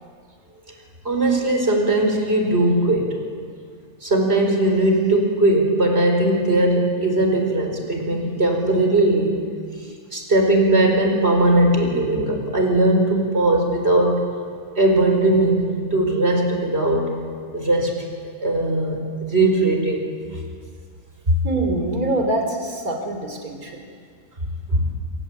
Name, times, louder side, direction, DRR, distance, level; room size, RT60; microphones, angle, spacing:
voice 1, 1.0-3.2 4.0-9.4 10.1-14.2 14.7-17.1 17.5-18.1 18.4-20.0 21.3-21.4 24.7-24.9, right 1 dB, 45° right, 3 dB, 5.0 m, -19 dB
voice 2, 21.4-23.8, right 2 dB, 70° right, 3 dB, 3.8 m, -24 dB
26.0 x 26.0 x 8.6 m, 2.1 s
omnidirectional pair, 1.6 m